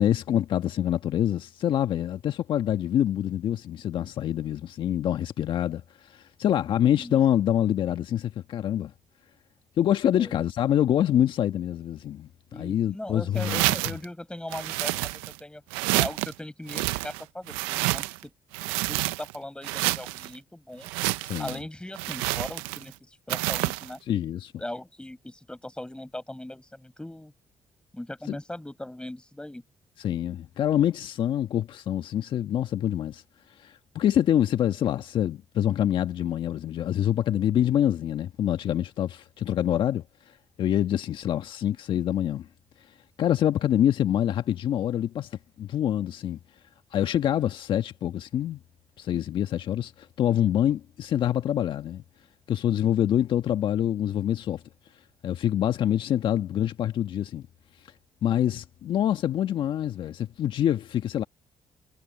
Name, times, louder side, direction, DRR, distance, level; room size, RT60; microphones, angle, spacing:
voice 1, 0.0-8.9 9.8-13.6 21.2-21.6 24.1-24.5 28.3-28.4 30.0-33.2 33.6-40.0 40.6-42.5 43.2-45.3 45.6-46.4 46.9-48.6 49.0-52.0 52.5-54.6 55.2-57.5 58.2-61.2, left 11 dB, 65° left, 1.6 m, -26 dB
voice 2, 12.5-15.6 16.0-18.1 18.7-20.9 21.4-24.0 24.6-27.3 27.9-29.6, left 1 dB, 10° left, 7.7 m, -39 dB
sound 1, 13.4-14.0 14.5-15.4 15.7-16.3 16.7-18.2 18.5-19.4 19.6-20.3 20.8-21.6 22.0-22.9 23.3-23.9, right 21 dB, 85° right, 0.8 m, -28 dB
hypercardioid pair, 50°, 9 cm